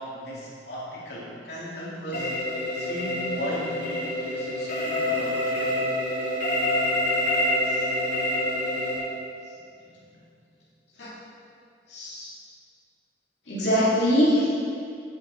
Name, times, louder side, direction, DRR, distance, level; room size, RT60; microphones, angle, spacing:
voice 1, 0.0-2.3 2.7-5.7, equal, 70° left, -8 dB, 2.5 m, -36 dB
sound 1, 2.1-9.0, left 1 dB, 50° left, 2.4 m, -26 dB
voice 2, 11.9-12.4 13.5-14.6, equal, 85° left, -10 dB, 2.2 m, -23 dB
8.7 x 8.2 x 4.3 m, 2.3 s
head